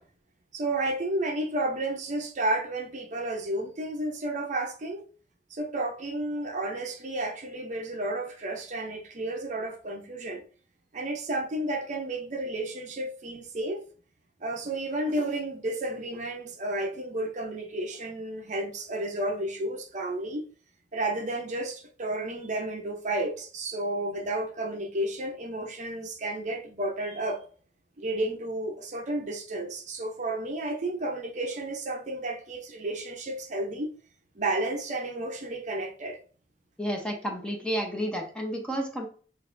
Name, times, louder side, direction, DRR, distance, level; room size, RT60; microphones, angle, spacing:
voice 1, 0.5-5.1 5.5-10.4 10.9-13.8 14.4-20.4 20.9-27.4 28.0-33.9 34.4-36.2, right 1 dB, 45° right, 0.7 m, -32 dB
voice 2, 36.8-39.1, equal, 5° left, 0.8 m, -31 dB
6.3 x 2.6 x 2.6 m
head